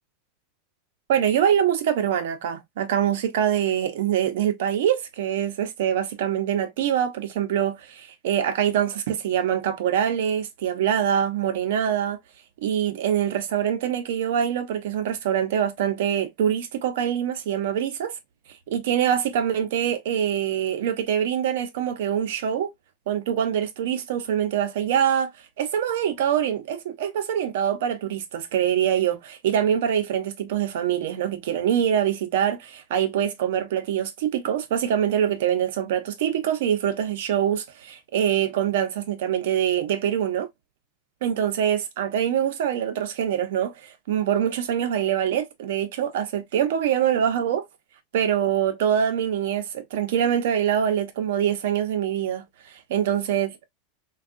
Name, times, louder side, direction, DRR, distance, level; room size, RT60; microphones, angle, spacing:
voice 1, 1.1-12.2 12.6-18.1 18.7-22.7 23.1-25.3 25.6-40.5 41.2-47.6 48.1-53.7, right 9 dB, 75° right, 0.7 m, -24 dB
3.4 x 2.3 x 2.5 m
supercardioid pair, 150°, 0 cm